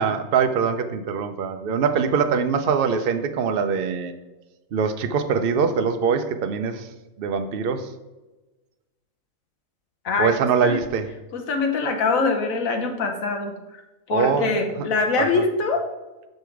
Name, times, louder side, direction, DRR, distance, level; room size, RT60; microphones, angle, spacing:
voice 1, 0.0-4.1 4.7-6.9 7.2-7.9 10.2-11.1 14.1-14.5 15.2-15.3, right 6 dB, 55° right, 7 dB, 0.7 m, -23 dB
voice 2, 10.0-10.8 11.3-13.8 14.1-15.9, left 3 dB, 70° left, 5 dB, 1.4 m, -24 dB
6.7 x 5.3 x 4.6 m, 1.1 s
omnidirectional pair, 1.5 m